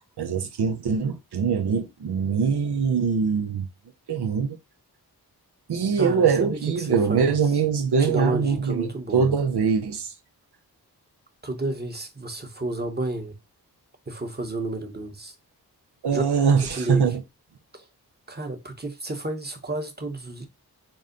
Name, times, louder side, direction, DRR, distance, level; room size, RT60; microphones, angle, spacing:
voice 1, 0.2-3.7 4.1-4.6 5.7-8.8 9.1-10.1 16.0-17.2, right 6 dB, 80° right, 0.8 m, -23 dB
voice 2, 6.0-7.4 8.0-9.3 11.4-13.4 14.1-15.3 16.1-17.2 17.7-17.9 18.3-20.5, right 2 dB, 25° right, 1.0 m, -31 dB
4.0 x 2.2 x 3.8 m
cardioid pair, 40°, 39 cm